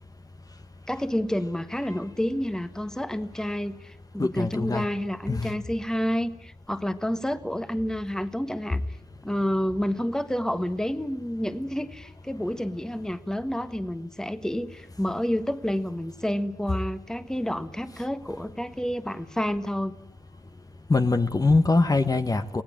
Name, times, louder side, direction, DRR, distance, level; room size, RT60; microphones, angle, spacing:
voice 1, 0.9-8.8 9.2-20.0, equal, 5° left, 11 dB, 1.4 m, -29 dB
voice 2, 4.2-4.9 5.3-5.6 20.9-22.6, left 3 dB, 25° left, 8 dB, 1.3 m, -23 dB
24.5 x 18.0 x 8.8 m, 0.70 s
cardioid pair, 75°, 14 cm